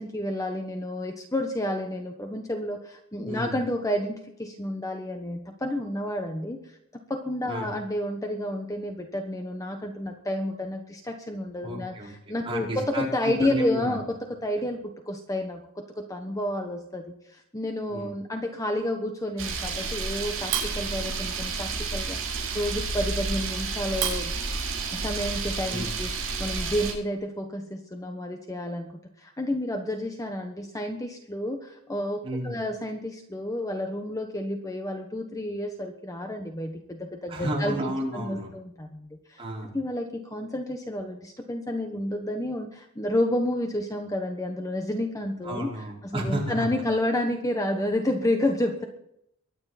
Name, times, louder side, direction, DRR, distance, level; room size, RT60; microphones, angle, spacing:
voice 1, 0.0-6.8 7.1-11.9 12.3-24.3 24.9-26.1 26.4-39.4 39.7-45.7 46.1-48.8, left 1 dB, 15° left, 4 dB, 1.1 m, -30 dB
voice 2, 3.2-3.6 7.5-7.7 11.6-12.1 12.4-14.0 17.9-18.1 25.7-25.9 32.2-32.6 37.3-38.5 39.4-39.7 45.4-46.7, right 1 dB, 25° right, -4 dB, 4.8 m, -32 dB
Camera, 19.4-26.9, right 4 dB, 70° right, 7.2 m, -30 dB
23.0 x 9.8 x 4.2 m, 0.75 s
head